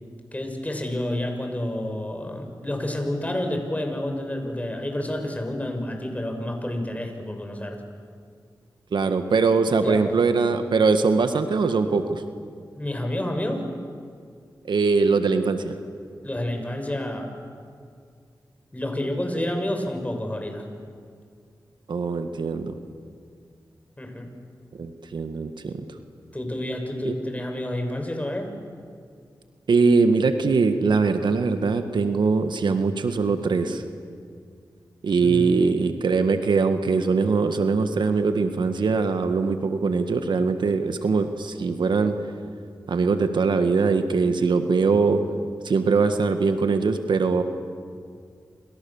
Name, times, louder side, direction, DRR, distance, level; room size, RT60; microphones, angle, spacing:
voice 1, 0.3-7.8 9.7-10.1 12.7-13.6 16.2-17.3 18.7-20.7 24.0-24.3 26.3-28.5 35.2-35.6, left 1 dB, 20° left, 5 dB, 6.1 m, -29 dB
voice 2, 8.9-12.2 14.7-15.8 21.9-22.7 24.8-25.7 27.0-27.1 29.7-33.8 35.0-42.1 42.9-45.2 45.6-47.4, right 4 dB, 75° right, 8 dB, 1.7 m, -22 dB
29.0 x 27.5 x 7.3 m, 2.2 s
cardioid pair, 45°, 8 cm